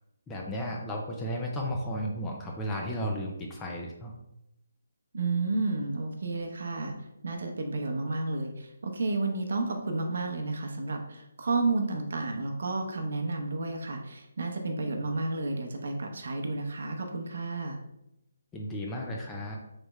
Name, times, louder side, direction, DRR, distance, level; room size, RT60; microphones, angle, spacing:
voice 1, 0.3-4.1 18.5-19.6, equal, 10° left, 0 dB, 0.4 m, -34 dB
voice 2, 5.1-6.9 7.2-17.8, right 3 dB, 65° right, 3 dB, 0.7 m, -31 dB
3.4 x 3.2 x 3.0 m, 0.86 s
hypercardioid pair, 170°, 0 cm